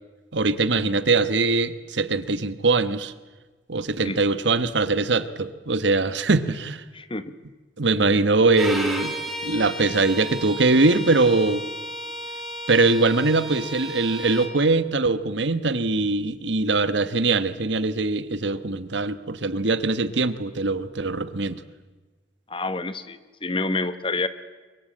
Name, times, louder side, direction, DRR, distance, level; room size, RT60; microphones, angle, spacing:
voice 1, 0.3-3.1 3.7-6.8 7.8-9.2 9.4-11.6 12.7-21.6, right 3 dB, 70° right, 13 dB, 1.3 m, -22 dB
voice 2, 6.9-7.3 22.5-24.3, left 3 dB, 25° left, 13 dB, 1.1 m, -28 dB
Bowed string instrument, 8.5-14.5, equal, ahead, 3.5 m, -33 dB
24.0 x 23.0 x 8.7 m, 1.3 s
head